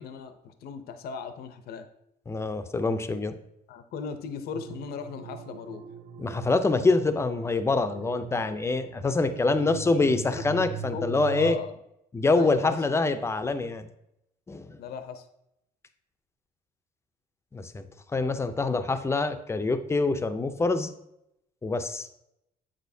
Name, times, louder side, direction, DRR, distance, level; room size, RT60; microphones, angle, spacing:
voice 1, 0.0-1.9 3.7-5.8 9.4-10.6 10.9-11.8 12.4-12.8 14.8-15.3 18.4-18.5, left 6 dB, 65° left, 9 dB, 0.6 m, -38 dB
voice 2, 2.3-3.3 6.2-11.6 12.1-13.9 14.5-14.8 17.5-17.8 18.1-20.9 21.6-22.2, left 3 dB, 15° left, 10 dB, 0.5 m, -25 dB
sound 1, 4.5-11.5, right 5 dB, 60° right, 0.8 m, -41 dB
7.6 x 6.3 x 2.7 m, 0.81 s
cardioid pair, 110°, 17 cm